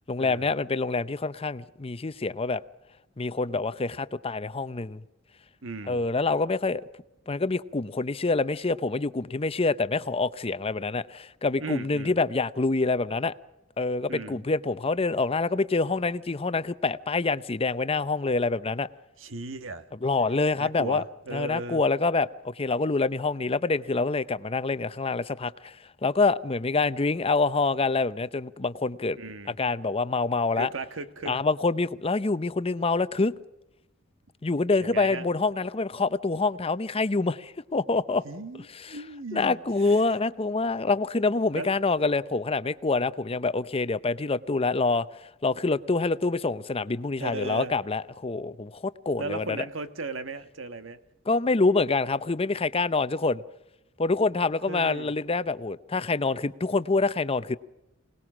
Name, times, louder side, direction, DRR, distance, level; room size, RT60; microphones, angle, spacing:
voice 1, 0.1-2.6 3.2-5.0 5.9-6.8 7.3-13.3 13.8-18.9 20.0-21.0 21.3-25.7 26.0-29.2 29.6-30.7 31.3-33.3 34.4-38.2 38.8-39.0 39.3-45.1 45.4-49.6 51.3-53.4 54.0-57.6, left 3 dB, 30° left, 0.7 m, -26 dB
voice 2, 5.6-6.0 11.6-12.2 14.1-14.4 19.2-19.8 20.6-21.8 29.2-29.6 30.5-31.4 34.8-35.3 38.2-39.6 39.8-40.0 40.9-41.0 41.5-41.7 47.2-47.7 49.2-51.0 54.7-55.1, right 3 dB, 80° right, 1.4 m, -37 dB
26.0 x 19.0 x 6.1 m
head